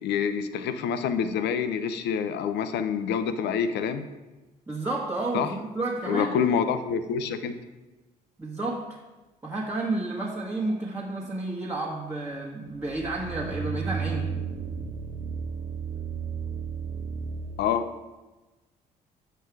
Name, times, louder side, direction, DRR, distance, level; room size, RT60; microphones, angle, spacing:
voice 1, 0.0-4.0 5.3-5.5 6.1-7.5 17.6-17.9, left 7 dB, 55° left, 10 dB, 0.6 m, -27 dB
voice 2, 4.7-6.3 8.4-8.8 9.4-14.3, right 2 dB, 10° right, -5 dB, 1.4 m, -31 dB
sound 1, 12.6-17.7, right 6 dB, 40° right, 0.8 m, -33 dB
7.7 x 4.6 x 4.7 m, 1.1 s
figure-of-eight pair, 50°, 21 cm